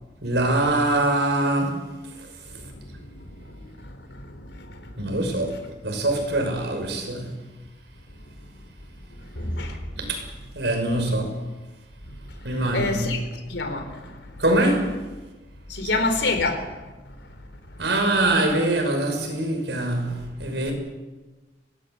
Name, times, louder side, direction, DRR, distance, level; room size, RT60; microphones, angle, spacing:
voice 1, 0.2-1.8 5.0-7.3 9.5-9.6 10.0-10.2 10.5-11.4 12.4-13.1 14.4-15.0 17.8-20.7, right 1 dB, 75° right, 6.1 m, -23 dB
voice 2, 2.5-5.6 8.2-8.3 9.2-9.9 12.1-13.2 13.5-14.4 15.7-17.3 17.7-17.8, left 2 dB, 85° left, 4.4 m, -30 dB
24.5 x 19.0 x 8.0 m
head